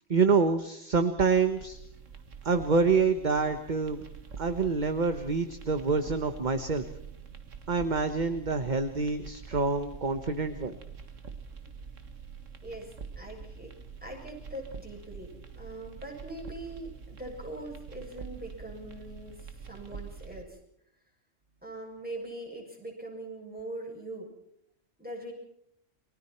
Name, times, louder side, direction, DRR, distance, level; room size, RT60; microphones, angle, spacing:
voice 1, 0.1-1.8 2.4-4.0 4.4-6.8 7.7-10.7, right 4 dB, 40° right, 8 dB, 1.3 m, -26 dB
sound 1, 1.2-20.4, right 6 dB, 85° right, 2.1 m, -46 dB
voice 2, 12.6-13.7 14.0-20.6 21.6-24.3 25.0-25.3, right 1 dB, 5° right, -1 dB, 7.5 m, -42 dB
30.0 x 23.0 x 4.4 m, 0.73 s
omnidirectional pair, 1.3 m